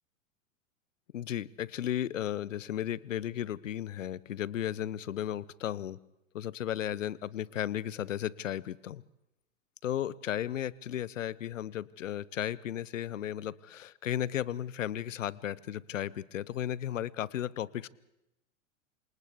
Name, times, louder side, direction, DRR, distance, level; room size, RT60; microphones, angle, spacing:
voice 1, 1.1-6.0 6.3-9.0 9.8-17.9, left 11 dB, 70° left, 22 dB, 0.8 m, -35 dB
28.0 x 27.0 x 3.6 m, 0.86 s
figure-of-eight pair, 95°, 40 cm